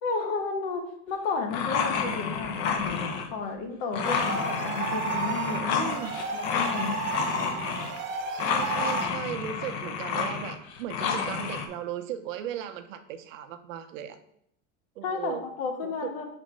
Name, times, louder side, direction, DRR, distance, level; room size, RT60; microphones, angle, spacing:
voice 1, 0.0-6.0 6.3-7.0 15.0-16.3, left 4 dB, 65° left, 4 dB, 1.3 m, -32 dB
sound 1, 1.5-3.3 3.9-8.0 8.4-11.7, left 6 dB, 45° left, 0.9 m, -30 dB
sound 2, 4.0-9.1, right 5 dB, 30° right, 0.9 m, -33 dB
voice 2, 5.7-6.1 8.3-14.2 15.0-15.4 15.8-16.1, right 10 dB, 85° right, 8 dB, 0.8 m, -37 dB
4.5 x 4.2 x 5.2 m, 0.72 s
supercardioid pair, 145°, 37 cm